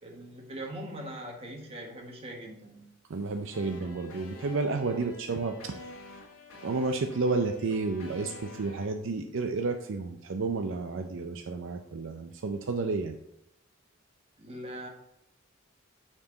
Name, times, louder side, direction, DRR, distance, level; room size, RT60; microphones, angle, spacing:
voice 1, 0.0-2.9 4.9-5.1 14.4-14.9, right 1 dB, 30° right, 0 dB, 1.4 m, -41 dB
voice 2, 3.1-5.8 6.6-13.2, right 3 dB, 65° right, 5 dB, 0.5 m, -31 dB
sound 1, 3.5-8.9, left 2 dB, 85° left, 1.6 m, -48 dB
8.6 x 4.5 x 3.9 m, 0.82 s
head